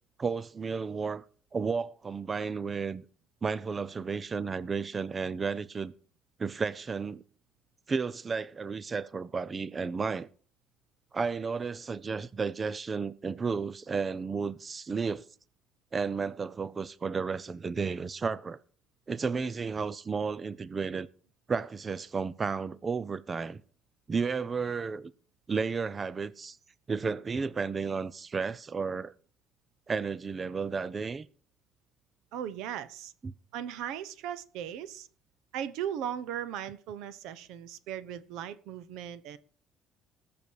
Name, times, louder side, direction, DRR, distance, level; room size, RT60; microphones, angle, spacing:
voice 1, 0.2-1.2 1.5-3.0 3.4-5.9 6.4-7.2 7.9-10.3 11.1-15.3 15.9-18.6 19.1-21.1 21.5-23.6 24.1-25.1 25.5-26.6 26.9-29.1 29.9-31.3 33.2-33.3, right 5 dB, 25° right, 0.5 m, -32 dB
voice 2, 32.3-33.1 33.5-35.1 35.5-39.4, right 9 dB, 90° right, 1.0 m, -37 dB
19.5 x 7.0 x 4.7 m
cardioid pair, 130°, 0 cm